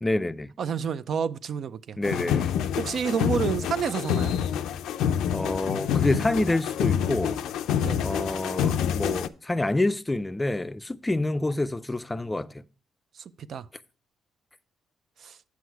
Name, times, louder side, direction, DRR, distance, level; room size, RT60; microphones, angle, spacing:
voice 1, 0.0-0.5 2.0-2.5 5.3-7.4 8.0-12.6, left 2 dB, 15° left, 0.4 m, -27 dB
voice 2, 0.6-2.0 2.8-4.4 7.8-8.0 13.1-13.2 13.5-13.7 15.2-15.4, right 7 dB, 60° right, 0.5 m, -29 dB
sound 1, 2.0-9.3, left 8 dB, 85° left, 0.4 m, -27 dB
8.3 x 6.2 x 4.6 m
cardioid pair, 90°, 0 cm